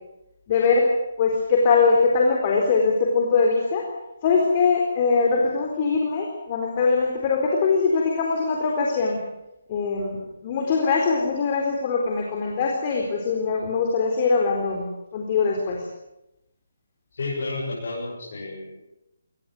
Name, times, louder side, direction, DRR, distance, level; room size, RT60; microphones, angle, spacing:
voice 1, 0.5-0.9 1.2-3.9 4.2-9.2 9.7-15.8, left 4 dB, 35° left, 1 dB, 4.1 m, -22 dB
voice 2, 17.1-18.8, left 3 dB, 65° left, -3 dB, 7.4 m, -31 dB
23.0 x 20.0 x 7.9 m, 0.89 s
figure-of-eight pair, 150°, 0 cm